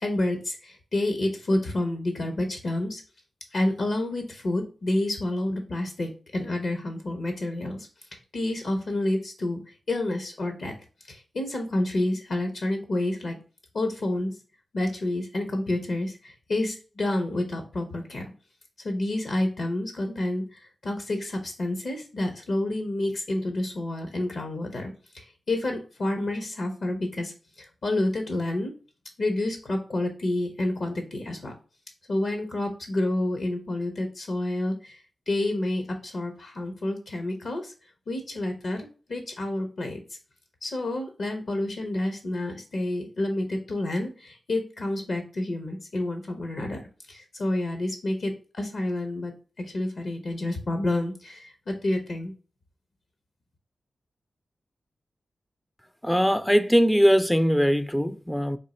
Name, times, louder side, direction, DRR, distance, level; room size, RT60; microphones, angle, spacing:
voice 1, 0.0-3.0 3.5-9.6 9.9-10.7 11.1-13.4 13.7-14.4 14.7-18.2 18.8-27.3 27.6-28.7 29.2-31.5 32.1-35.0 35.3-37.7 38.1-40.0 40.6-46.8 47.1-52.3, left 1 dB, 70° left, 1.1 m, -29 dB
voice 2, 56.0-58.6, equal, 5° left, 0.4 m, -21 dB
3.8 x 2.5 x 4.2 m
cardioid pair, 55°, 0 cm